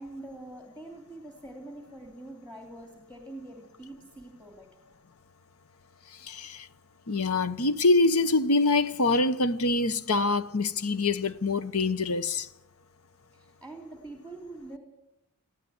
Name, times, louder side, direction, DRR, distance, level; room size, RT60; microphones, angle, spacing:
voice 1, 0.0-4.7 13.3-14.8, right 2 dB, 5° left, 3.0 m, -44 dB
voice 2, 6.2-6.7 7.1-12.5, left 3 dB, 70° left, 1.0 m, -25 dB
21.5 x 15.0 x 9.6 m
head